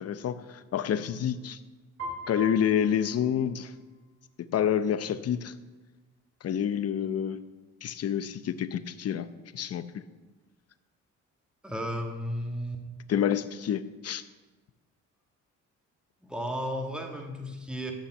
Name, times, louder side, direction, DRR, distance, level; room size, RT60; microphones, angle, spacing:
voice 1, 0.0-1.6 2.3-3.7 4.4-5.5 6.4-7.4 7.8-9.3 9.5-10.0 13.1-14.2, left 9 dB, 55° left, 12 dB, 0.8 m, -28 dB
Piano, 2.0-4.0, equal, 50° right, 3.8 m, -42 dB
voice 2, 11.6-12.8 16.2-17.9, equal, 5° right, 2 dB, 1.8 m, -34 dB
13.0 x 5.7 x 7.7 m, 1.3 s
cardioid pair, 90°, 30 cm